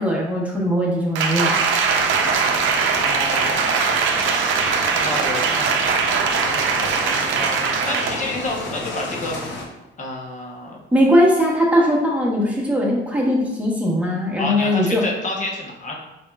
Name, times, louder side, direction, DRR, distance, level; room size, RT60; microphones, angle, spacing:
voice 1, 0.0-1.6 10.9-15.0, equal, 5° right, -3 dB, 1.0 m, -19 dB
Applause, 1.1-8.3 8.7-8.8, right 5 dB, 75° right, 0.5 m, -21 dB
sound 1, 1.8-9.7, left 2 dB, 65° left, 0.8 m, -32 dB
voice 2, 3.0-6.0 6.4-9.4 10.0-10.8 14.4-15.9, left 2 dB, 40° left, 0 dB, 0.9 m, -30 dB
4.1 x 3.4 x 2.3 m, 0.98 s
cardioid pair, 90°, 20 cm